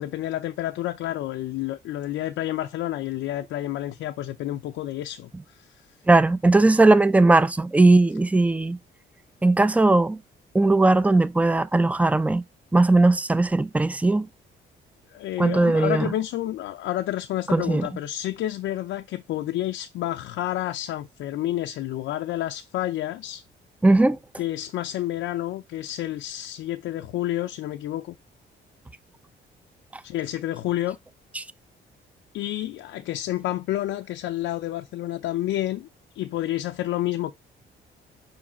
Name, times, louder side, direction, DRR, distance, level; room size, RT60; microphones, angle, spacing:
voice 1, 0.0-5.7 15.1-23.4 24.4-28.2 30.0-31.0 32.3-35.9 36.1-37.3, left 14 dB, 85° left, 0.6 m, -29 dB
voice 2, 6.1-8.8 9.4-10.2 10.5-12.4 12.7-14.3 15.4-16.1 17.5-17.8 23.8-24.2 31.3-31.4, right 2 dB, 5° right, 0.5 m, -18 dB
5.3 x 4.8 x 4.2 m
cardioid pair, 90°, 20 cm